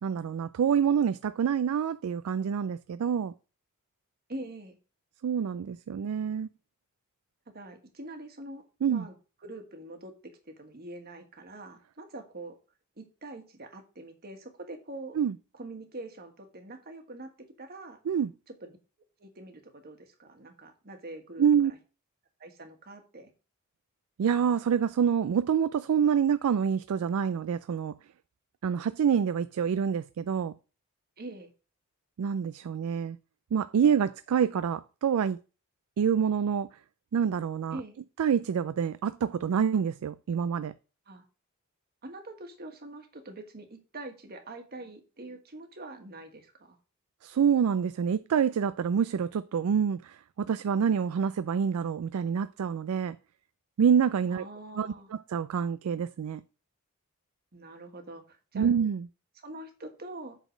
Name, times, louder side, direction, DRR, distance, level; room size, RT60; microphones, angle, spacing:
voice 1, 0.0-3.3 5.2-6.5 8.8-9.1 15.2-15.3 18.1-18.3 21.4-21.7 24.2-27.9 28.6-30.5 32.2-33.2 33.5-35.4 36.0-36.7 37.1-37.8 38.2-40.7 47.2-53.2 53.8-54.5 54.8-56.4 58.5-59.0, right 7 dB, 90° right, 0.4 m, -27 dB
voice 2, 4.3-4.8 7.5-9.1 9.4-10.1 10.4-12.6 13.0-15.2 15.5-17.3 17.6-18.0 18.6-18.7 19.2-21.8 22.4-23.3 31.2-31.5 37.7-38.0 41.1-41.2 42.0-46.8 54.3-55.1 57.5-58.7 59.4-60.4, right 2 dB, 45° right, 1.5 m, -44 dB
8.1 x 4.0 x 6.3 m
head